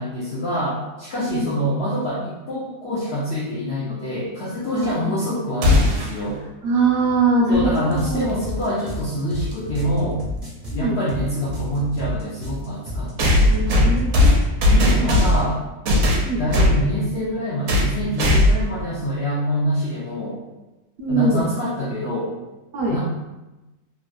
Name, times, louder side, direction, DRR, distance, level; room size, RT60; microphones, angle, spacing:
voice 1, 0.0-6.4 7.5-10.2 10.7-13.6 14.7-15.6 16.4-20.5 21.1-22.3 22.9-23.0, equal, 70° left, -7 dB, 0.6 m, -25 dB
voice 2, 1.2-1.5 4.7-5.2 6.6-8.3 10.7-11.0 13.4-14.4 14.9-15.2 16.2-16.4 21.0-21.5 22.7-23.0, right 3 dB, 65° right, -4 dB, 0.9 m, -22 dB
sound 1, 5.6-6.2 8.3-8.4 9.5-9.6 13.2-15.5 15.9-16.8 17.7-17.9 18.2-18.7, left 1 dB, 90° right, 1.1 m, -17 dB
sound 2, 7.5-14.6, left 1 dB, 40° right, 0.8 m, -31 dB
3.0 x 2.5 x 2.2 m, 1.1 s
omnidirectional pair, 1.6 m